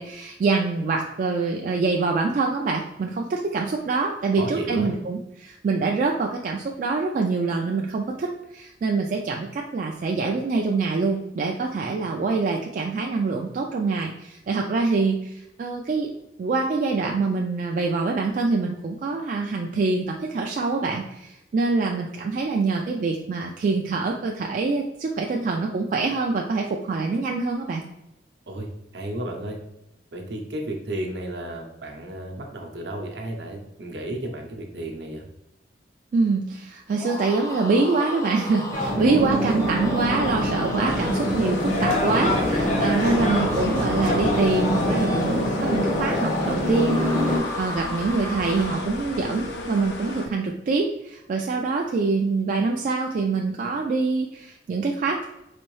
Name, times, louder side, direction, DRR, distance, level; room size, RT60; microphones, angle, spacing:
voice 1, 0.0-16.1 16.4-27.8 36.1-47.0 47.6-55.3, right 3 dB, 45° right, 1 dB, 0.3 m, -25 dB
voice 2, 4.4-5.0 28.5-29.6 30.1-35.2, right 1 dB, 70° right, 2 dB, 0.7 m, -33 dB
sound 1, 36.9-49.0, left 1 dB, 20° left, 0.4 m, -34 dB
sound 2, 38.7-47.4, equal, 45° left, 0.8 m, -24 dB
sound 3, 40.9-50.3, left 2 dB, 75° left, 0.6 m, -34 dB
4.1 x 2.6 x 3.1 m, 0.85 s
head